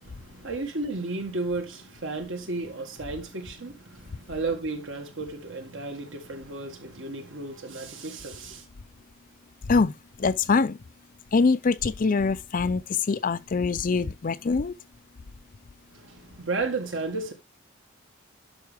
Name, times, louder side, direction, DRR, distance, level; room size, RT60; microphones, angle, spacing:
voice 1, 0.0-8.6 15.9-17.3, right 3 dB, 65° right, 1.9 m, -33 dB
voice 2, 10.2-10.8 11.3-12.8 13.1-14.7, left 4 dB, 40° left, 0.5 m, -23 dB
11.5 x 5.6 x 3.4 m
head